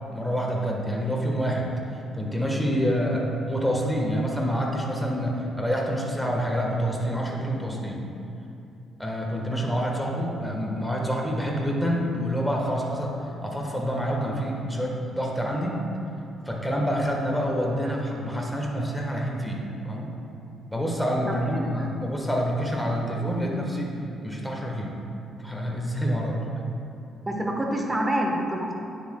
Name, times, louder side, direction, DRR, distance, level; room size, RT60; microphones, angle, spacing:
voice 1, 0.1-8.0 9.0-13.1 13.4-15.8 16.4-20.1 20.7-23.9 24.2-25.0 25.4-26.4, equal, 5° left, -1 dB, 1.3 m, -27 dB
voice 2, 21.3-21.7 27.3-28.7, right 1 dB, 15° right, 0 dB, 1.1 m, -27 dB
9.5 x 7.4 x 2.2 m, 2.7 s
cardioid pair, 90°, 0 cm